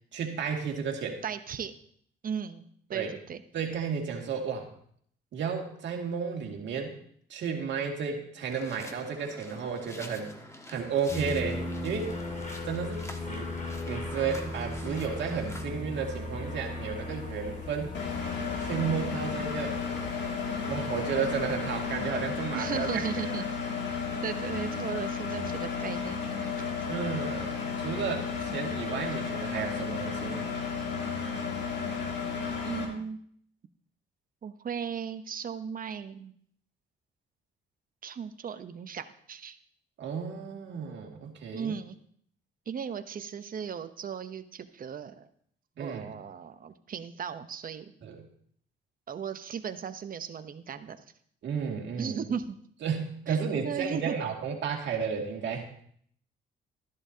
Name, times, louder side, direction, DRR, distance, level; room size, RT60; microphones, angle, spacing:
voice 1, 0.1-1.2 2.9-3.1 3.5-4.7 5.3-7.0 7.3-10.3 10.7-12.1 12.6-13.5 13.9-17.9 18.6-19.8 20.7-23.2 26.9-30.5 40.0-41.7 45.8-46.1 48.0-48.2 51.4-52.2 52.8-55.7, right 6 dB, 70° right, 1 dB, 2.2 m, -33 dB
voice 2, 1.2-1.7 2.2-2.6 2.9-3.4 22.5-23.4 23.9-26.6 32.6-33.2 34.4-36.3 38.0-39.6 41.5-42.0 42.7-45.3 45.8-47.9 49.1-51.0 52.0-52.6 53.3-54.2, right 7 dB, 45° right, 10 dB, 0.9 m, -36 dB
sound 1, 8.5-15.6, left 1 dB, 15° left, 1.3 m, -47 dB
sound 2, 11.1-21.9, left 2 dB, 40° left, 2.1 m, -38 dB
Engine, 17.9-32.8, left 5 dB, 60° left, 2.4 m, -33 dB
13.5 x 11.0 x 2.8 m, 0.63 s
cardioid pair, 90°, 20 cm